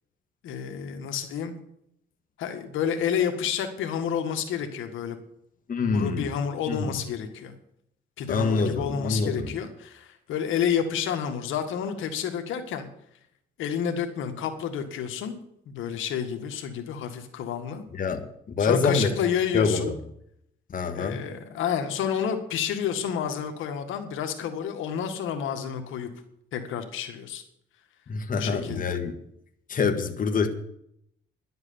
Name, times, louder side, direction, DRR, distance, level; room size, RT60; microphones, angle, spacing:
voice 1, 0.4-1.5 2.4-5.2 5.9-7.5 8.2-12.9 13.6-15.4 15.7-17.8 18.6-19.9 20.9-26.1 26.5-27.4 28.4-28.9, left 8 dB, 85° left, 6 dB, 1.8 m, -29 dB
voice 2, 5.7-6.3 6.7-6.9 8.3-9.5 17.9-18.2 18.5-19.1 19.5-19.8 20.7-21.2 28.1-29.1 29.7-30.5, left 4 dB, 45° left, 5 dB, 1.7 m, -25 dB
11.5 x 8.0 x 9.6 m, 0.73 s
cardioid pair, 90°, 20 cm